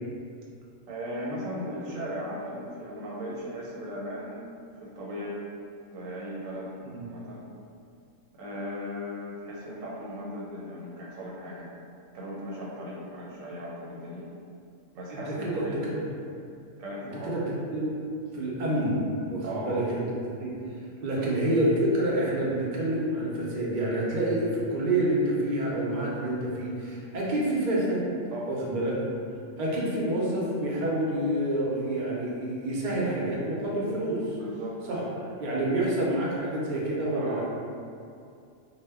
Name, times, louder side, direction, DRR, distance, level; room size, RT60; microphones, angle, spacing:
voice 1, 0.9-4.4 4.8-5.4 5.9-6.7 7.0-7.4 8.4-11.7 12.1-14.3 14.9-15.8 16.8-17.3 19.4-19.8 21.0-21.3 28.3-28.5 34.3-34.8 37.1-37.4, equal, 85° right, -5 dB, 1.0 m, -37 dB
voice 2, 15.1-16.0 17.2-17.4 17.7-17.9 18.3-20.0 20.4-20.5 21.0-28.0 28.5-28.9 29.6-34.4 34.9-37.4, right 1 dB, 55° right, -5 dB, 0.5 m, -28 dB
2.1 x 2.1 x 3.4 m, 2.5 s
omnidirectional pair, 1.4 m